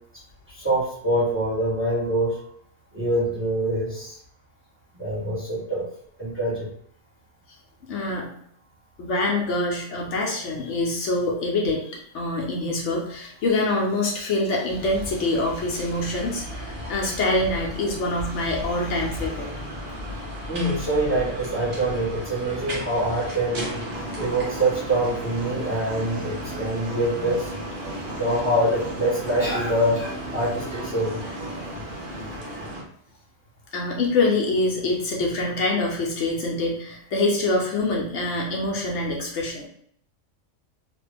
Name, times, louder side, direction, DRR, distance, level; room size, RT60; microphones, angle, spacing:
voice 1, 0.5-2.4 2.9-4.2 4.9-5.9 6.2-6.7 20.5-23.8 24.2-27.5 28.2-31.2 32.5-32.6, right 1 dB, 10° right, -7 dB, 1.1 m, -25 dB
voice 2, 7.9-8.3 9.0-19.5 33.7-39.7, left 2 dB, 70° left, -2 dB, 1.0 m, -25 dB
sound 1, 14.7-32.8, equal, 45° right, 1.0 m, -35 dB
sound 2, 23.9-31.7, right 3 dB, 65° right, 0.4 m, -38 dB
2.9 x 2.5 x 3.3 m, 0.64 s
omnidirectional pair, 1.3 m